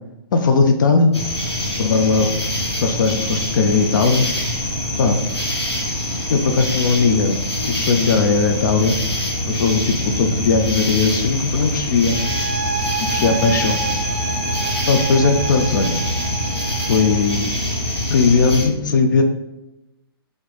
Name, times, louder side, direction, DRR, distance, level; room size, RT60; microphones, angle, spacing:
voice 1, 0.3-1.1 1.8-2.3 2.8-4.3 5.0-5.2 6.3-7.4 7.6-8.9 9.4-12.1 13.1-13.8 14.9-16.0 16.9-17.5 18.1-19.2, left 4 dB, 50° left, 5 dB, 0.4 m, -18 dB
sound 1, 1.1-18.7, left 1 dB, 90° left, 1.2 m, -24 dB
sound 2, 12.1-17.4, right 5 dB, 25° right, 0.4 m, -29 dB
3.1 x 2.6 x 3.2 m, 0.94 s
figure-of-eight pair, 130°, 13 cm